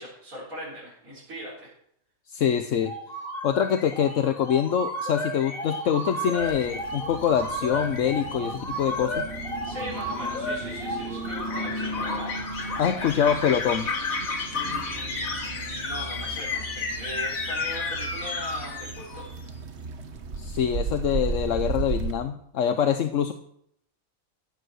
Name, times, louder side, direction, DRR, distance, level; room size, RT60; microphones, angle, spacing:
voice 1, 0.0-1.7 9.6-12.6 14.5-19.3, right 1 dB, 90° right, -8 dB, 4.6 m, -40 dB
voice 2, 2.3-2.9 3.4-9.3 12.8-13.9 20.4-23.3, left 8 dB, 70° left, 8 dB, 1.1 m, -25 dB
sound 1, 2.8-19.4, left 2 dB, 85° left, 2.3 m, -32 dB
sound 2, 6.4-22.1, right 3 dB, 55° right, 1.5 m, -36 dB
15.5 x 7.9 x 6.4 m, 0.71 s
omnidirectional pair, 1.4 m